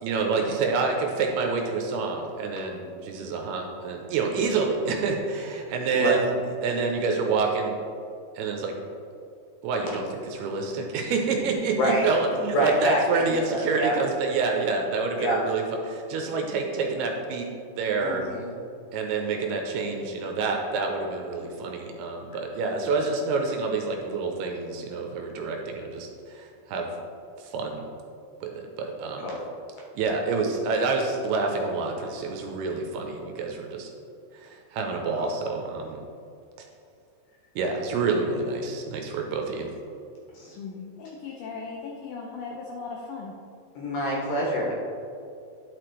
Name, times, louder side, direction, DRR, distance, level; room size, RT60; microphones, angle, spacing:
voice 1, 0.0-7.8 8.4-8.8 9.6-17.5 17.8-18.3 18.9-26.9 27.4-27.9 28.4-29.3 30.0-33.9 34.3-36.0 37.6-39.7, right 4 dB, 85° right, 2 dB, 2.5 m, -28 dB
voice 2, 11.7-12.1 12.5-14.0 15.2-15.4 18.0-18.4 29.2-29.5 35.2-35.3 40.3-40.9 43.8-44.7, equal, 70° left, -3 dB, 2.2 m, -27 dB
voice 3, 41.0-43.3, left 4 dB, 90° left, -1 dB, 1.9 m, -37 dB
10.5 x 5.9 x 3.2 m, 2.5 s
omnidirectional pair, 4.9 m